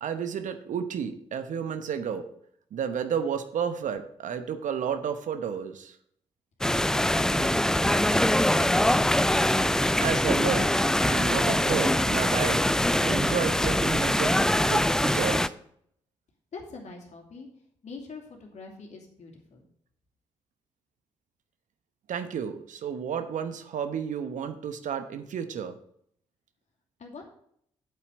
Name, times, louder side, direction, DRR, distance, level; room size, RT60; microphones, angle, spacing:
voice 1, 0.0-2.3 2.7-5.9 10.0-10.7 11.1-12.6 13.0-14.3 14.7-15.5 22.1-25.8, right 7 dB, 55° right, 9 dB, 1.0 m, -31 dB
sound 1, 6.6-15.5, left 1 dB, 5° left, 0.4 m, -23 dB
voice 2, 6.9-8.5 16.5-17.5 17.8-19.6 27.0-27.2, left 4 dB, 50° left, 1 dB, 2.6 m, -43 dB
8.6 x 8.0 x 5.2 m, 0.67 s
hypercardioid pair, 40°, 15 cm